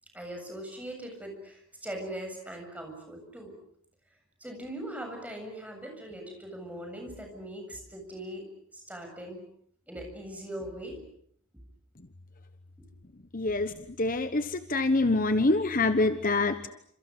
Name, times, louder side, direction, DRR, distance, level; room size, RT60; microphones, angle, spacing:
voice 1, 0.1-3.5 4.4-8.4 8.7-9.4 9.9-11.0, right 1 dB, 5° right, 3 dB, 7.6 m, -40 dB
voice 2, 13.3-16.7, left 2 dB, 40° left, 10 dB, 1.2 m, -26 dB
29.5 x 28.0 x 6.6 m, 0.66 s
head